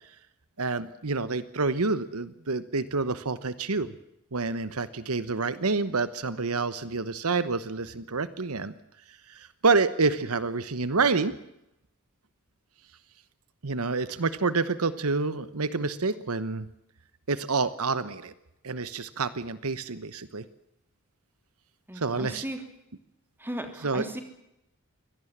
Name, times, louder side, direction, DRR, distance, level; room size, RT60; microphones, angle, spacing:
voice 1, 0.6-3.9 4.3-8.7 9.3-11.3 13.6-16.7 17.3-18.3 18.6-20.4 21.9-22.5 23.8-24.1, right 4 dB, 75° right, 14 dB, 1.1 m, -28 dB
voice 2, 21.9-22.6 23.4-24.2, right 1 dB, 10° right, 6 dB, 3.2 m, -36 dB
24.0 x 18.0 x 7.4 m, 0.84 s
head